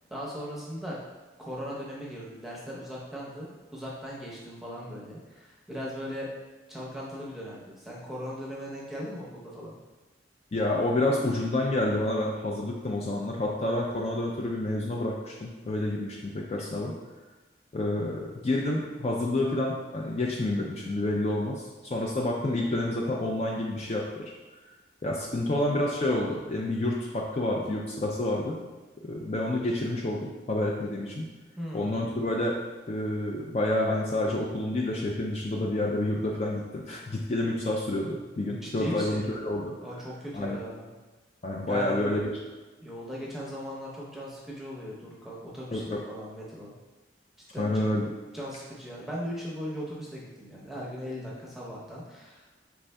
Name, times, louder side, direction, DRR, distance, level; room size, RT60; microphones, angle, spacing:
voice 1, 0.1-1.0 1.4-6.3 6.7-9.7 31.6-32.1 38.6-39.3 39.8-40.9 41.7-42.2 42.8-46.7 47.5-48.0 48.3-52.5, equal, ahead, -6 dB, 0.7 m, -38 dB
voice 2, 10.5-16.9 17.7-24.3 25.0-28.6 29.0-31.3 31.7-32.6 32.9-39.7 40.3-40.6 41.4-42.3 45.7-46.0 47.6-48.1, left 1 dB, 35° left, -2 dB, 0.4 m, -29 dB
5.2 x 3.5 x 2.2 m, 1.2 s
head